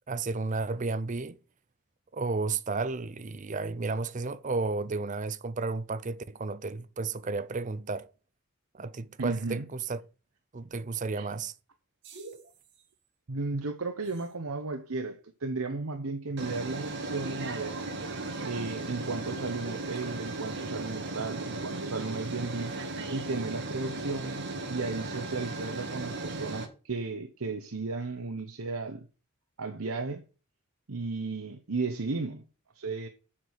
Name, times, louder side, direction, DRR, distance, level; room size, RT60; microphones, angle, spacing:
voice 1, 0.1-1.4 2.1-8.1 8.7-10.0 10.5-11.5, right 3 dB, 35° right, 0.6 m, -32 dB
voice 2, 9.2-9.6 11.2-11.3 13.3-17.8 18.4-22.7 23.1-29.1 29.6-30.2 30.9-32.4 32.7-33.1, right 3 dB, 80° right, 1.0 m, -34 dB
sound 1, 12.0-12.5 14.2-14.3 16.4-26.7, right 2 dB, 50° right, 2.0 m, -36 dB
7.7 x 6.1 x 6.4 m
head